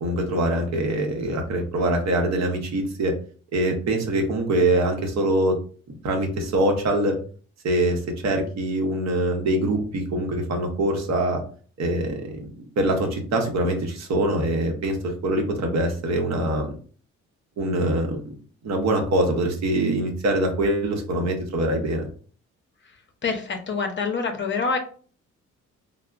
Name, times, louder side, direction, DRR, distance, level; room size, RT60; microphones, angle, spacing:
voice 1, 0.0-3.1 3.5-5.6 5.9-7.2 7.6-11.4 11.8-12.5 12.8-16.8 17.6-18.2 18.6-22.1, right 1 dB, 60° right, 3 dB, 0.8 m, -24 dB
voice 2, 23.2-24.8, left 4 dB, 40° left, 4 dB, 0.6 m, -26 dB
3.4 x 2.0 x 2.3 m, 0.43 s
cardioid pair, 90°, 30 cm